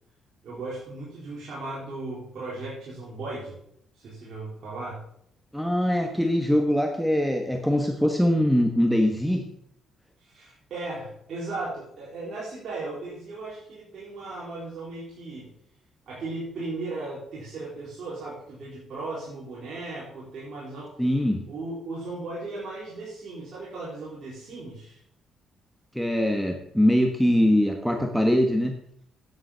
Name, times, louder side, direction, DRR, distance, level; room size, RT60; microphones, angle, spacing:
voice 1, 0.4-3.6 3.9-5.0 10.2-15.5 16.1-20.9 21.5-25.0, right 2 dB, 60° right, -7 dB, 3.8 m, -36 dB
voice 2, 5.5-9.4 21.0-21.4 25.9-28.7, equal, ahead, 3 dB, 1.2 m, -22 dB
9.6 x 7.2 x 5.6 m, 0.71 s
cardioid pair, 90°, 0 cm